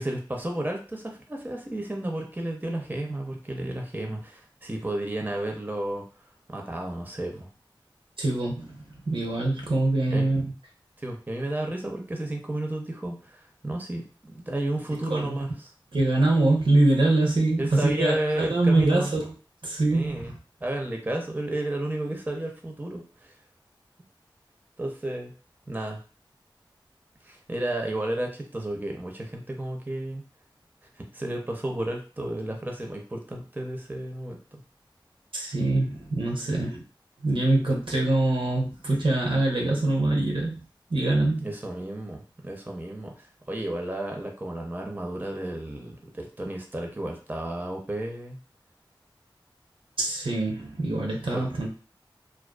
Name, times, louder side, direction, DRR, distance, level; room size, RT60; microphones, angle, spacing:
voice 1, 0.0-6.0 6.5-7.5 10.1-10.3 11.0-15.7 17.6-19.1 19.9-20.3 20.6-23.3 24.8-25.3 25.7-26.0 27.2-30.2 31.1-34.6 41.4-48.4 51.3-51.4, right 1 dB, 20° right, 2 dB, 0.6 m, -32 dB
voice 2, 8.2-10.5 15.1-15.3 15.9-19.3 19.6-20.4 35.3-36.8 37.2-40.6 40.9-41.5 50.0-51.7, right 2 dB, 80° right, 0 dB, 0.7 m, -24 dB
2.4 x 2.3 x 2.2 m, 0.37 s
wide cardioid pair, 45°, 9 cm